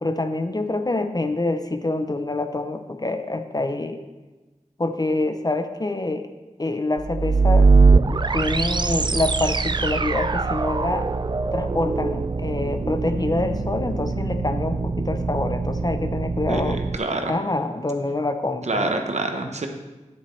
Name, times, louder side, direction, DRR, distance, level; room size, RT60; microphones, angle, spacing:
voice 1, 0.0-4.0 4.8-6.3 6.6-7.7 8.3-11.1 11.5-16.8 17.2-19.0, left 2 dB, 30° left, 8 dB, 0.6 m, -26 dB
sound 1, 7.0-17.0, right 4 dB, 35° right, 0.3 m, -22 dB
voice 2, 16.5-17.3 18.7-19.7, right 2 dB, 65° right, 5 dB, 0.9 m, -26 dB
9.9 x 8.4 x 3.2 m, 1.2 s
wide cardioid pair, 70°, 13 cm